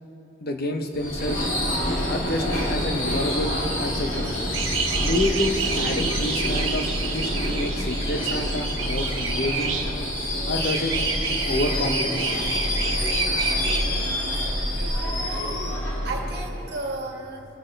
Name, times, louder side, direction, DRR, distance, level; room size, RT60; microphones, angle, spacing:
voice 1, 0.4-1.5 2.1-4.4 5.0-9.8 10.5-11.0 11.5-12.2, left 1 dB, 50° left, 5 dB, 1.1 m, -28 dB
Subway metro underground / Screech, 0.9-16.9, left 1 dB, 75° left, 3.4 m, -27 dB
sound 1, 4.5-9.9 10.6-13.8, right 6 dB, 90° right, 1.3 m, -30 dB
voice 2, 14.0-15.3 16.0-17.5, right 2 dB, 55° right, 0 dB, 2.0 m, -35 dB
23.5 x 10.0 x 3.4 m, 2.9 s
head